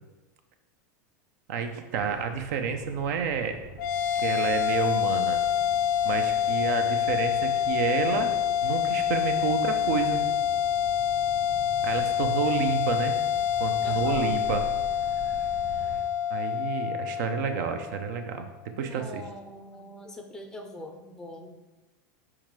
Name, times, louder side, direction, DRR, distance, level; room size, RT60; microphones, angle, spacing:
voice 1, 1.5-3.6 4.2-5.4 6.0-8.3 8.6-10.2 11.8-13.2 13.6-14.6 16.3-18.5 18.8-19.2, right 6 dB, 70° right, 7 dB, 0.6 m, -29 dB
Motor vehicle (road), 2.0-16.0, right 2 dB, 40° right, 1.1 m, -45 dB
sound 1, 3.8-18.4, left 9 dB, 75° left, 0.4 m, -27 dB
voice 2, 13.8-14.4 18.7-21.6, left 1 dB, 5° left, 4 dB, 0.4 m, -42 dB
4.4 x 3.6 x 3.1 m, 1.1 s
hypercardioid pair, 115°, 10 cm